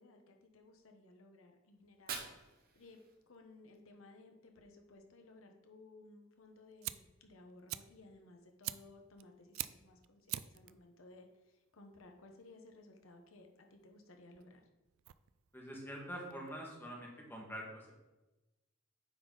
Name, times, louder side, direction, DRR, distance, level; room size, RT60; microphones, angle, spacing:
voice 1, 0.0-3.0 3.3-14.6, left 2 dB, 90° left, 4 dB, 1.1 m, -59 dB
Fire, 1.8-3.8, right 5 dB, 50° right, 1.0 m, -48 dB
Fire 2, 6.4-16.9, right 15 dB, 85° right, 0.3 m, -48 dB
voice 2, 15.5-17.9, equal, 10° left, -2 dB, 1.6 m, -45 dB
9.3 x 4.2 x 4.0 m, 1.1 s
head